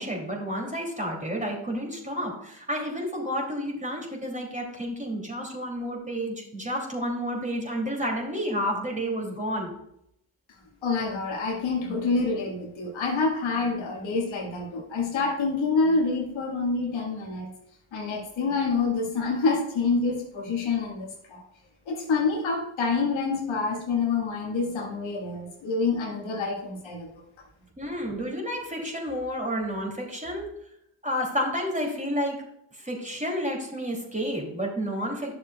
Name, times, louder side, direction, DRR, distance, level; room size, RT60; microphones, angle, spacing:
voice 1, 0.0-9.7 27.8-30.5 31.0-32.4 32.7-35.3, equal, 15° right, 0 dB, 3.0 m, -30 dB
voice 2, 10.8-17.5 17.9-21.4 21.9-27.1, left 4 dB, 80° left, -1 dB, 1.9 m, -27 dB
10.5 x 6.8 x 2.4 m, 0.77 s
supercardioid pair, 45°, 46 cm